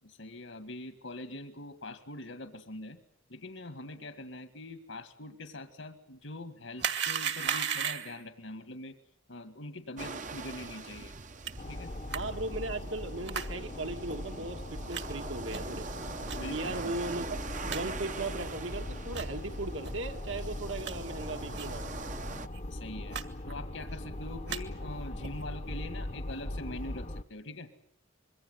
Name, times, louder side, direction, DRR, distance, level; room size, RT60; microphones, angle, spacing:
voice 1, 0.0-3.0 3.3-8.9 9.3-11.1 11.7-11.9 16.3-16.9 22.7-23.2 23.5-27.7, left 2 dB, 75° left, 8 dB, 2.0 m, -43 dB
sound 1, 6.8-8.2 11.5-11.6 12.1-12.2 13.3-13.5 14.1-14.2 14.9-15.0 15.5-15.8 16.3-16.4 16.9-17.0 17.3-17.4 17.7-17.8 18.4-18.5 19.1-19.3 19.8-19.9 20.4-20.9 21.5-21.8 22.0-22.1 22.4-22.6 23.1-23.2 23.5-23.9 24.3-24.6 25.2-25.4, right 7 dB, 55° right, 2.0 m, -35 dB
sound 2, 10.0-22.5, right 4 dB, 35° right, 0.9 m, -43 dB
sound 3, 11.6-27.2, left 1 dB, 35° left, 0.9 m, -40 dB
voice 2, 12.1-15.9 16.5-21.9, right 2 dB, 70° right, 6 dB, 2.1 m, -37 dB
26.0 x 23.0 x 8.0 m, 0.71 s
head